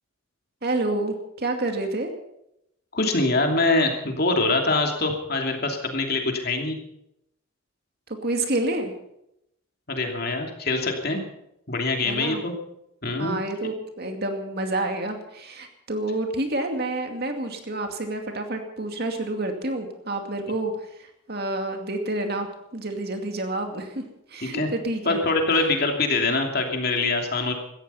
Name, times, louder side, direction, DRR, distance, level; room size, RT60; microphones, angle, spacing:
voice 1, 0.6-2.1 8.2-8.9 12.0-12.4 13.2-20.7 21.0-24.0 24.3-25.2, right 2 dB, 45° right, 5 dB, 2.3 m, -28 dB
voice 2, 2.9-6.8 9.9-11.2 11.7-12.5 13.0-13.4 24.4-24.7 25.0-27.5, left 3 dB, 45° left, 3 dB, 2.8 m, -24 dB
17.5 x 14.0 x 5.7 m, 0.81 s
head